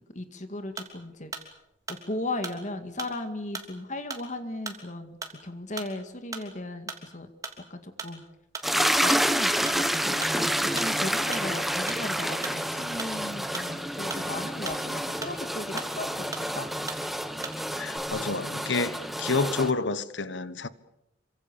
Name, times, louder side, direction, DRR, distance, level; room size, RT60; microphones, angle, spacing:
voice 1, 0.1-1.3 1.9-7.3 7.7-8.2 8.7-16.7, left 2 dB, 40° left, 2.1 m, -36 dB
sound 1, 0.8-1.0 1.3-1.5 1.9-2.6 3.0-3.2 3.5-3.7 4.1-4.3 4.7-4.8 5.2-5.5 5.8-5.9 6.3-6.6 6.9-7.1 7.4-7.6 8.0-8.2 8.5-8.7 9.1-9.3 9.7-9.8 10.2-10.4 10.8-11.0 11.3-11.5 11.9-12.1 12.4-12.6 13.0-13.2 13.5-14.3 14.7-14.9 15.2-15.4 15.8-16.0 16.3-16.5 16.9-17.1 17.4-17.6 17.9-18.0, right 4 dB, 20° right, 3.2 m, -38 dB
sound 2, 8.6-19.7, equal, ahead, 1.2 m, -29 dB
voice 2, 17.7-20.7, left 3 dB, 80° left, 1.3 m, -29 dB
27.5 x 24.5 x 7.1 m
head